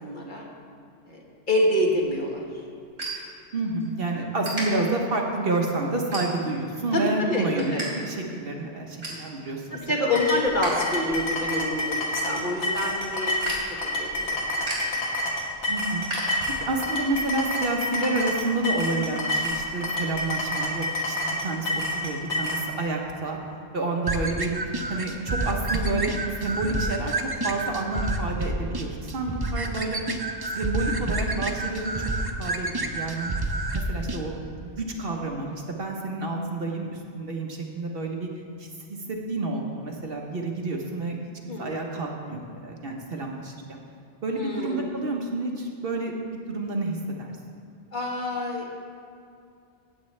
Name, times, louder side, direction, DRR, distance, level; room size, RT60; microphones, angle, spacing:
voice 1, 0.0-0.5 1.1-1.2 1.5-2.4 6.9-7.8 9.7-13.3 14.0-15.0 41.5-41.7 44.3-44.9 47.9-48.7, left 1 dB, 40° left, -2 dB, 1.6 m, -27 dB
sound 1, 1.9-3.9 4.2-4.6 5.2-5.4 6.0-6.7 7.1-7.9 8.2-8.3 8.6-9.3 9.7-10.7 11.1-16.8, right 1 dB, 70° right, 3.4 m, -36 dB
voice 2, 3.5-9.8 15.7-16.1 16.5-23.4 23.7-24.6 24.9-30.0 30.5-32.1 32.4-33.3 33.7-38.3 38.6-39.0 39.3-41.2 41.6-43.8 44.2-47.3, right 2 dB, 55° right, 1 dB, 1.1 m, -29 dB
sound 2, 10.1-22.6, left 1 dB, 65° left, 1.7 m, -28 dB
sound 3, 24.1-34.2, right 2 dB, 30° right, 0.4 m, -29 dB
16.0 x 8.3 x 3.2 m, 2.4 s
omnidirectional pair, 1.3 m